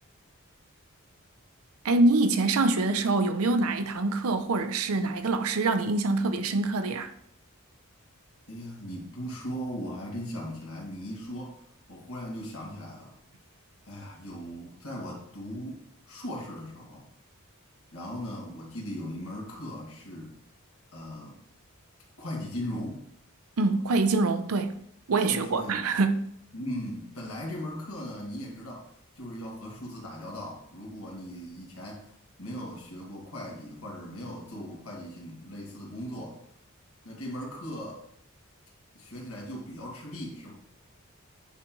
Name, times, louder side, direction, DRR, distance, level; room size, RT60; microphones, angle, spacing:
voice 1, 1.8-7.1 23.6-24.7 25.1-26.3, right 3 dB, 85° right, 0.6 m, -25 dB
voice 2, 8.5-11.6 11.9-13.1 13.9-17.1 17.9-20.3 20.9-21.4 22.2-23.0 25.3-25.8 26.5-28.9 29.2-32.0 32.4-36.4 37.0-38.0 38.9-40.5, equal, 90° left, 2.0 m, -38 dB
9.4 x 3.8 x 3.1 m
head